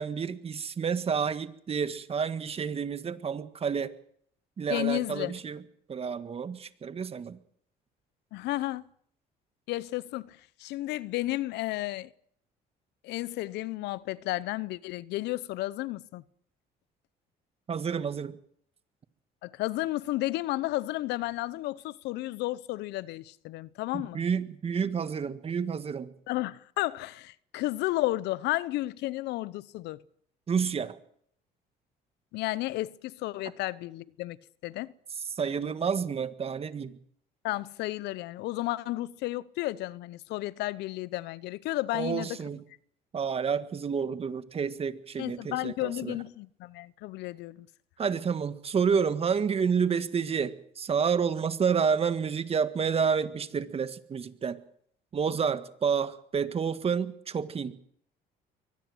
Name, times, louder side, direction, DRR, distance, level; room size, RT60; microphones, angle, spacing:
voice 1, 0.0-3.9 4.6-5.6 5.9-7.4 17.7-18.3 23.9-26.1 30.5-31.0 35.3-36.9 41.9-42.6 43.1-46.2 48.0-54.6 55.1-57.7, right 6 dB, 35° right, 1.7 m, -29 dB
voice 2, 4.7-5.3 8.3-8.8 9.7-12.1 13.0-16.2 19.4-24.2 26.3-30.0 32.3-34.4 34.6-34.9 37.4-42.4 45.2-47.7, left 17 dB, 85° left, 0.9 m, -32 dB
23.5 x 18.5 x 7.9 m
cardioid pair, 110°, 17 cm